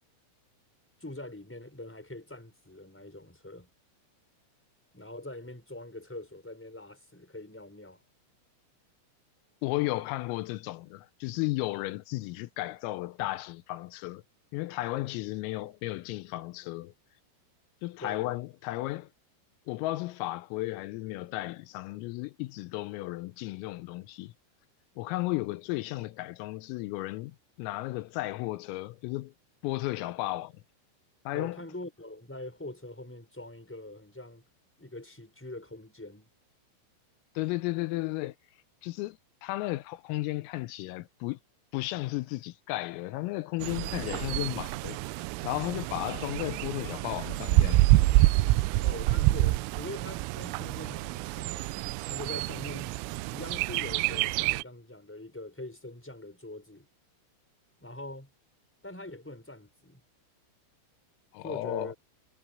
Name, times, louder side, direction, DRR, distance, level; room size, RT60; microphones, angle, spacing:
voice 1, 1.0-3.7 4.9-8.0 18.0-18.3 31.3-34.5 34.8-36.3 48.8-51.7 52.1-53.0 53.3-56.9 57.8-58.3 58.8-60.0 61.4-62.0, left 1 dB, ahead, 5.4 m, -43 dB
voice 2, 9.6-14.2 14.5-16.9 17.8-19.1 19.7-24.3 25.0-29.3 29.6-30.5 31.3-31.6 37.4-38.4 38.8-41.4 41.7-45.0 45.4-47.9 61.3-61.9, left 19 dB, 85° left, 3.5 m, -34 dB
Bird, 43.6-54.6, right 18 dB, 85° right, 3.1 m, -27 dB
omnidirectional pair, 5.9 m